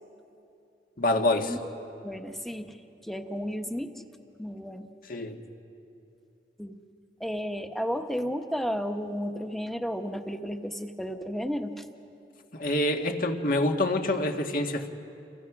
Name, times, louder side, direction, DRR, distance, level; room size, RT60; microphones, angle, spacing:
voice 1, 1.0-1.5 5.1-5.4 12.5-14.9, left 1 dB, 55° left, 4 dB, 1.8 m, -26 dB
voice 2, 2.0-3.9 4.4-4.9 6.6-6.8 7.2-12.0, equal, ahead, 5 dB, 1.2 m, -33 dB
29.0 x 28.5 x 6.1 m, 2.7 s
head